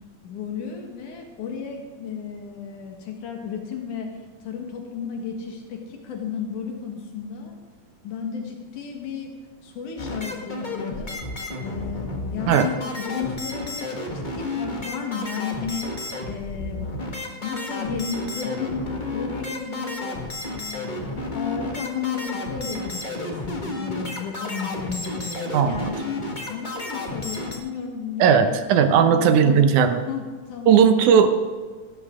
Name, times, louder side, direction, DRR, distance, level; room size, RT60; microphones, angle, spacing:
voice 1, 0.2-4.1 4.4-7.5 8.0-9.3 9.6-11.1 11.6-14.1 14.3-15.9 16.2-16.9 17.4-18.9 19.1-20.1 20.5-26.0 26.5-28.6 28.9-29.6 30.1-30.8, left 6 dB, 80° left, 2 dB, 3.0 m, -33 dB
sound 1, 10.0-27.6, left 2 dB, 25° left, 1.0 m, -32 dB
voice 2, 25.5-25.9 28.2-30.0 30.7-31.4, right 7 dB, 80° right, 8 dB, 2.4 m, -17 dB
17.5 x 13.5 x 3.7 m, 1.5 s
omnidirectional pair, 3.5 m